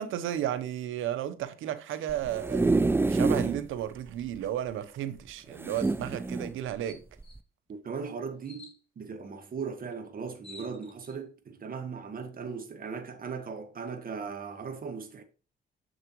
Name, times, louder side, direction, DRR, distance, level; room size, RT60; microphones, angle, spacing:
voice 1, 0.0-2.7 3.1-7.0, right 11 dB, 85° right, 0.9 m, -33 dB
sound 1, 2.1-3.6 4.1-4.2 4.4-4.5 5.6-6.5 7.2-7.4, right 3 dB, 10° right, 0.4 m, -27 dB
sound 2, 5.8-6.0 6.4-6.5 6.9-7.4 8.4-8.8 9.9-10.0 10.2-11.2, left 2 dB, 30° left, 2.2 m, -50 dB
voice 2, 7.7-15.2, right 5 dB, 45° right, 1.7 m, -38 dB
7.0 x 6.5 x 3.0 m
cardioid pair, 90°, 20 cm